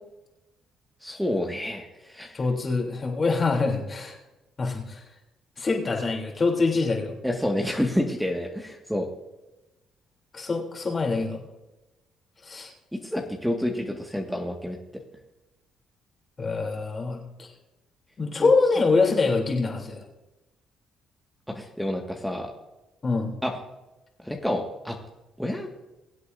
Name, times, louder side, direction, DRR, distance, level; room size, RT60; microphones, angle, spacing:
voice 1, 1.0-2.3 7.2-9.1 12.9-14.8 18.4-18.5 21.5-22.5 23.4-23.5 24.2-25.0 25.4-25.7, left 1 dB, ahead, 1 dB, 1.9 m, -28 dB
voice 2, 2.3-4.1 4.6-5.0 5.6-7.1 10.3-11.4 12.4-12.7 16.4-17.5 18.2-20.0 23.0-23.3, left 3 dB, 40° left, 1 dB, 3.3 m, -25 dB
23.0 x 8.1 x 2.7 m, 1.0 s
hypercardioid pair, 55°, 0 cm